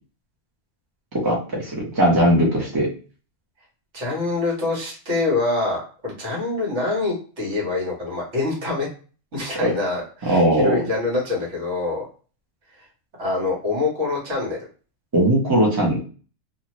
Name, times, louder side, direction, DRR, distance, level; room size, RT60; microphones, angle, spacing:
voice 1, 1.1-2.9 9.6-9.7 10.2-10.8 15.1-16.0, right 1 dB, 20° right, -2 dB, 0.7 m, -19 dB
voice 2, 3.9-8.9 9.3-12.1 13.2-14.6, left 3 dB, 60° right, -3 dB, 1.5 m, -25 dB
2.7 x 2.4 x 3.0 m, 0.38 s
omnidirectional pair, 1.4 m